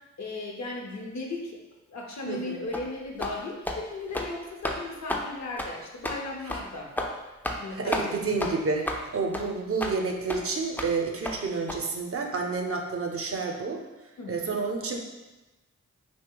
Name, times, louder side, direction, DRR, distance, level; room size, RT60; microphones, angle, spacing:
voice 1, 0.2-1.6 1.9-6.9 7.6-8.4 14.2-14.6, left 2 dB, 65° left, 0 dB, 0.7 m, -36 dB
voice 2, 2.3-2.6 6.5-6.6 7.7-13.8 14.3-15.0, right 4 dB, 50° right, 2 dB, 0.5 m, -30 dB
sound 1, 2.7-2.9 3.2-3.4 3.7-3.8 4.1-4.3 4.6-4.8 5.1-5.3 5.6-5.7 6.0-6.2 6.5-6.6 7.0-7.1 7.4-7.6 7.9-8.1 8.4-8.5 8.9-9.0 9.3-9.5 9.8-10.0 10.3-10.4 10.8-10.9 11.3-11.4 11.7-11.8, left 1 dB, 5° left, 0.4 m, -31 dB
2.7 x 2.1 x 3.7 m, 1.1 s
cardioid pair, 40°, 30 cm